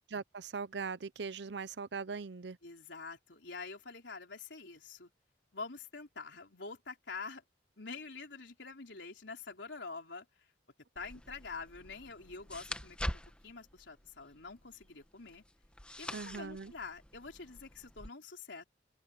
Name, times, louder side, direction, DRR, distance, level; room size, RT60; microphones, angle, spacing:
voice 1, 0.1-2.6 16.1-16.7, right 5 dB, 65° right, 0.6 m, -40 dB
voice 2, 2.6-5.1 5.5-7.4 7.8-10.5 11.0-15.4 16.0-18.6, left 4 dB, 80° left, 3.8 m, -46 dB
sound 1, 11.0-18.1, left 1 dB, 5° left, 1.1 m, -45 dB
open air
head